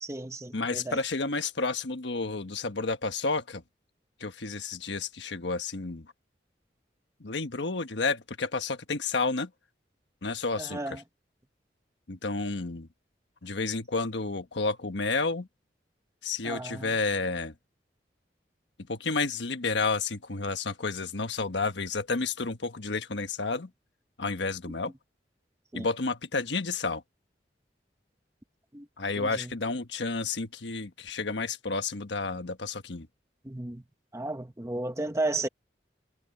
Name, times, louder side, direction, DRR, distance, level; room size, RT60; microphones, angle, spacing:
voice 1, 0.0-1.0 10.6-11.0 16.4-16.9 25.7-25.9 28.7-28.9 29.2-29.5 33.4-33.8 34.1-35.5, right 2 dB, 15° right, 0.9 m, -33 dB
voice 2, 0.5-3.6 4.2-6.1 7.2-9.5 10.2-11.0 12.1-12.9 13.4-15.5 16.2-17.5 18.9-23.7 24.2-24.9 25.7-27.0 29.0-33.1, left 3 dB, 85° left, 1.3 m, -31 dB
head